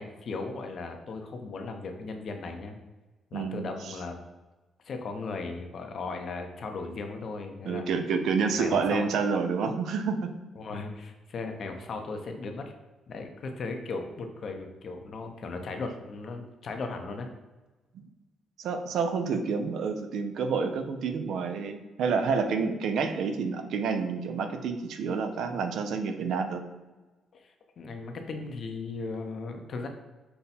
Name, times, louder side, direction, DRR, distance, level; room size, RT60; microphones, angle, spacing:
voice 1, 0.0-2.8 3.3-4.2 4.8-7.9 8.6-9.1 10.6-12.6 13.1-17.3 27.3-29.9, left 3 dB, 55° left, 4 dB, 0.7 m, -37 dB
voice 2, 3.3-3.9 7.6-10.3 17.9-18.0 18.6-26.6, right 5 dB, 75° right, 7 dB, 0.5 m, -29 dB
5.6 x 2.3 x 4.1 m, 1.2 s
cardioid pair, 90°, 0 cm